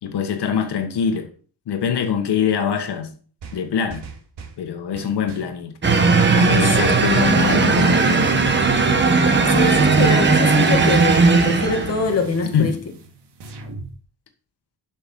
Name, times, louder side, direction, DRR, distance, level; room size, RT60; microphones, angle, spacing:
voice 1, 0.0-1.3 1.7-3.1 3.5-4.0 4.6-5.7 6.3-8.3 12.4-12.8, left 7 dB, 75° left, 1.6 m, -23 dB
sound 1, 3.4-4.6 4.9-5.5 5.9-7.1 7.4-8.0 8.4-9.6 10.0-11.1 11.4-13.9, right 4 dB, 85° right, 2.4 m, -39 dB
sound 2, 5.8-12.1, right 4 dB, 25° right, 1.2 m, -17 dB
voice 2, 6.6-6.9 9.5-12.7, left 4 dB, 35° left, 1.7 m, -23 dB
12.0 x 6.0 x 5.4 m
wide cardioid pair, 175°, 40 cm